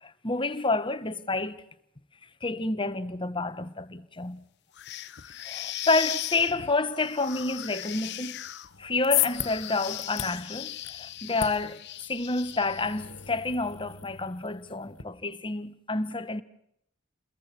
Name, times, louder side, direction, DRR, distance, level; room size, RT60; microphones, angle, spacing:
voice 1, 0.0-1.6 2.4-4.4 5.4-8.4 8.8-11.8 12.1-16.4, left 3 dB, 25° left, 1.3 m, -29 dB
sound 1, 4.7-13.0, left 13 dB, 55° left, 1.0 m, -38 dB
sound 2, 8.7-15.0, left 13 dB, 75° left, 1.8 m, -35 dB
30.0 x 22.0 x 6.2 m
head